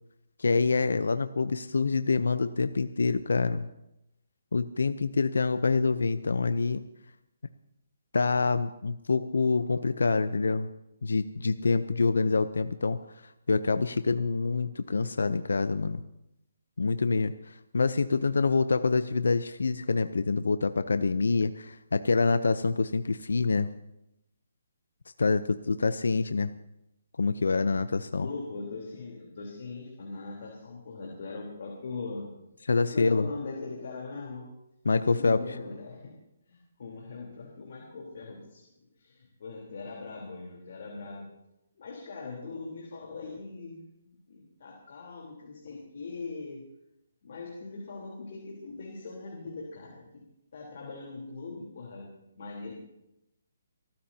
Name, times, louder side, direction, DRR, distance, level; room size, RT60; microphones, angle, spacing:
voice 1, 0.4-3.7 4.5-6.8 8.1-10.7 11.0-13.0 13.5-16.0 16.8-23.7 25.2-26.5 27.2-28.3 32.7-33.3 34.9-35.4, left 4 dB, 85° left, 12 dB, 0.6 m, -26 dB
voice 2, 28.1-32.3 32.9-34.5 34.9-36.1 36.5-41.3 41.8-46.6 47.2-50.2 50.5-52.1 52.3-52.7, left 3 dB, 55° left, -2 dB, 3.6 m, -41 dB
29.0 x 13.0 x 2.8 m, 0.87 s
hypercardioid pair, 160°, 0 cm